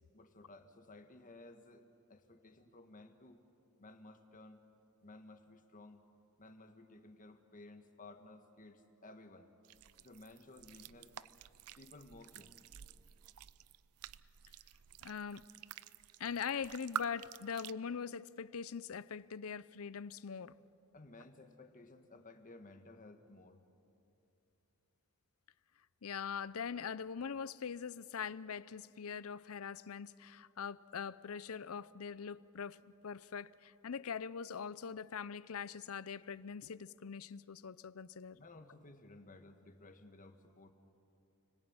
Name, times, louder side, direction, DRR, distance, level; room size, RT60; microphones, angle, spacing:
voice 1, 0.1-3.4 3.8-4.6 5.0-6.0 6.4-9.5 10.0-11.1 11.8-12.6 20.9-23.6 38.3-40.7, left 2 dB, 40° left, 1.6 m, -56 dB
sound 1, 9.6-17.7, right 9 dB, 90° right, 0.5 m, -49 dB
voice 2, 15.0-15.5 16.2-20.6 26.0-38.4, left 6 dB, 75° left, 0.6 m, -42 dB
30.0 x 20.5 x 8.8 m
head